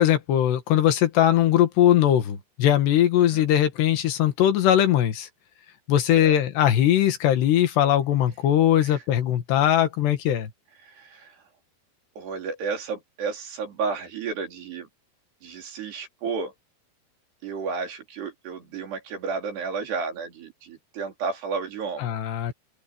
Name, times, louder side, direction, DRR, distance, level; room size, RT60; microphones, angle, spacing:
voice 1, 0.0-5.3 5.9-10.5 22.0-22.5, left 11 dB, 80° left, 3.9 m, -20 dB
voice 2, 3.2-3.5 6.2-6.3 8.8-9.0 10.8-11.4 12.2-14.9 15.4-16.5 17.4-22.1, right 5 dB, 75° right, 6.0 m, -32 dB
open air
omnidirectional pair, 4.8 m